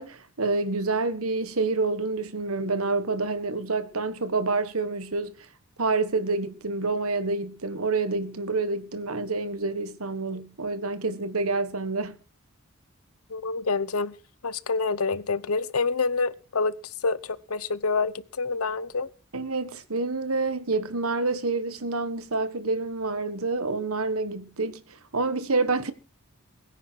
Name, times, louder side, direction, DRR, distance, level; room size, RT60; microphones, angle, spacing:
voice 1, 0.0-5.3 5.8-12.2 19.3-25.9, right 3 dB, 80° right, 1.6 m, -28 dB
voice 2, 13.3-14.1 14.4-16.7 17.0-19.1, left 4 dB, 80° left, 1.0 m, -27 dB
21.5 x 9.9 x 4.7 m
head